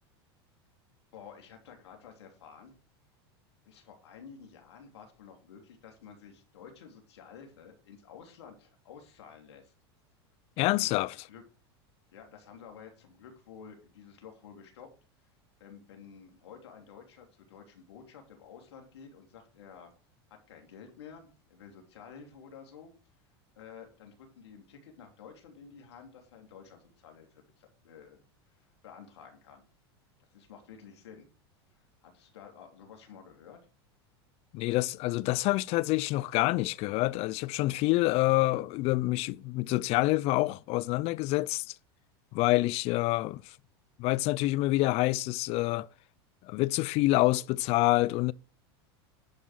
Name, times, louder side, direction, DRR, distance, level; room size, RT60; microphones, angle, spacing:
voice 1, 1.1-2.7 3.6-9.7 10.6-11.0 11.3-11.4 12.1-14.9 15.6-19.9 20.3-22.9 23.5-28.2 28.5-29.6 30.2-31.3 31.7-33.6, left 7 dB, 85° left, 3.0 m, -51 dB
voice 2, 10.6-11.1 34.5-41.8 42.3-43.6 44.0-45.9 46.4-48.3, left 19 dB, 50° left, 0.5 m, -27 dB
10.5 x 5.3 x 6.1 m
hypercardioid pair, 110°, 14 cm